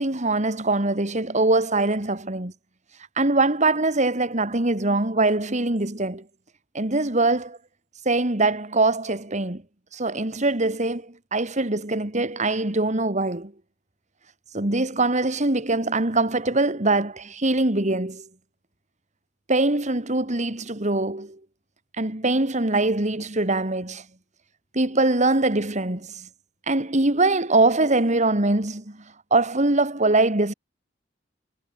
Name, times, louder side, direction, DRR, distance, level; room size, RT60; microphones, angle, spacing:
voice 1, 0.0-2.5 3.2-6.2 6.7-7.6 8.0-9.6 9.9-13.5 14.5-18.2 19.5-21.4 22.0-24.0 24.7-26.3 26.7-29.0 29.3-30.5, right 2 dB, 40° right, 2.7 m, -23 dB
head